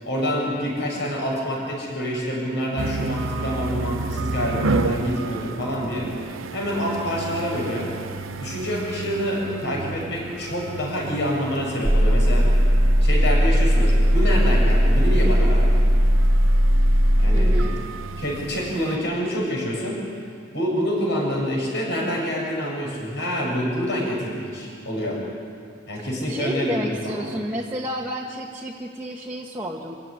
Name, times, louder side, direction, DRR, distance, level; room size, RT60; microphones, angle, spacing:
voice 1, 0.0-6.2 6.5-7.9 8.4-12.5 13.0-15.8 17.2-17.7 18.2-20.0 20.5-25.2 25.9-27.3, equal, 60° left, -2 dB, 7.3 m, -27 dB
sound 1, 2.8-19.0, right 3 dB, 85° right, 0.7 m, -32 dB
voice 2, 9.4-10.2 17.3-17.8 26.0-30.0, right 1 dB, 10° right, -5 dB, 1.5 m, -31 dB
sound 2, 11.8-17.6, equal, 30° right, 1.0 m, -17 dB
26.0 x 15.5 x 9.9 m, 2.3 s
head